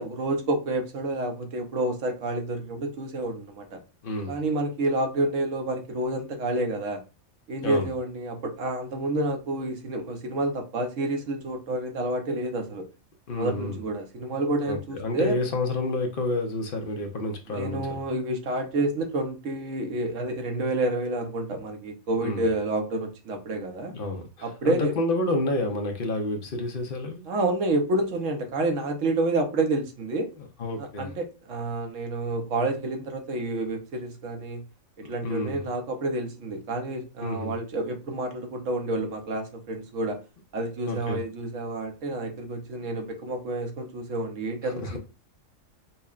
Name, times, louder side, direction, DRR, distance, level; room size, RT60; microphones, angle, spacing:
voice 1, 0.0-3.8 4.3-7.0 7.5-12.9 13.4-15.4 17.5-23.9 24.4-24.9 27.3-30.3 30.8-34.6 35.1-40.2 40.5-45.0, right 2 dB, 70° right, 1.1 m, -29 dB
voice 2, 4.0-4.4 7.6-7.9 13.3-13.8 14.7-17.9 22.2-22.5 23.9-27.2 30.4-31.1 35.0-35.6 37.2-37.5 40.9-41.2 42.8-42.9 44.6-45.0, left 2 dB, 50° left, 0.7 m, -30 dB
5.5 x 2.1 x 2.4 m
omnidirectional pair, 1.4 m